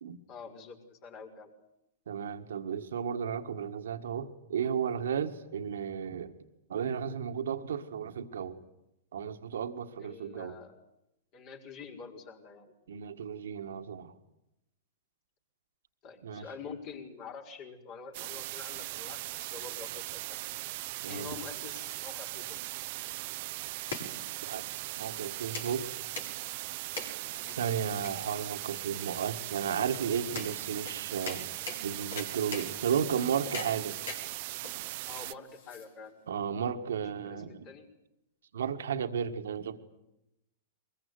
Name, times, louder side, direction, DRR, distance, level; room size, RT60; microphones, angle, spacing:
voice 1, 0.3-1.5 10.0-10.7 11.3-12.7 16.0-20.5 21.0-22.6 27.4-27.6 35.1-36.2 37.2-37.9, left 5 dB, 45° left, 4 dB, 6.0 m, -46 dB
voice 2, 2.1-6.3 6.7-8.6 9.1-10.6 12.9-14.1 16.2-16.5 21.0-21.4 24.4-25.9 27.5-31.5 31.8-34.0 36.3-37.7 38.5-39.8, right 7 dB, 75° right, 7 dB, 1.8 m, -34 dB
White noise, 18.1-35.3, right 20 dB, 55° right, 0.9 m, -39 dB
sound 1, 21.3-36.3, left 3 dB, 70° left, 7.3 m, -44 dB
23.5 x 22.0 x 9.7 m, 0.88 s
hypercardioid pair, 110°, 0 cm